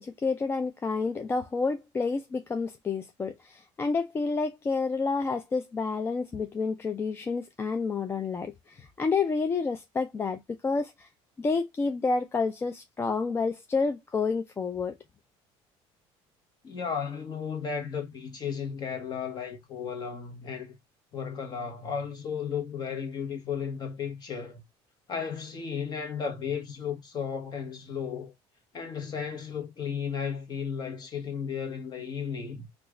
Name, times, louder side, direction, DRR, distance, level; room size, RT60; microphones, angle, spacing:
voice 1, 0.0-11.1 11.4-14.9, left 4 dB, 20° left, 0.4 m, -29 dB
voice 2, 16.6-20.8 21.1-24.6 25.1-28.3 28.7-32.7, left 7 dB, 35° left, 1.1 m, -34 dB
3.0 x 2.4 x 3.5 m
cardioid pair, 135°, 12 cm